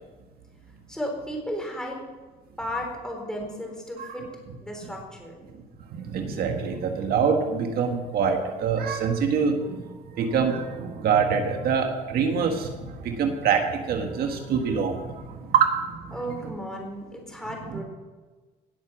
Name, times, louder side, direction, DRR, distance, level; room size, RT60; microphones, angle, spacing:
voice 1, 0.9-2.0 2.6-4.3 4.6-5.5 16.1-17.8, equal, 5° left, 0 dB, 3.9 m, -34 dB
voice 2, 5.9-16.1 17.7-17.8, right 6 dB, 65° right, 4 dB, 1.6 m, -25 dB
18.0 x 6.6 x 6.1 m, 1.3 s
cardioid pair, 110°, 17 cm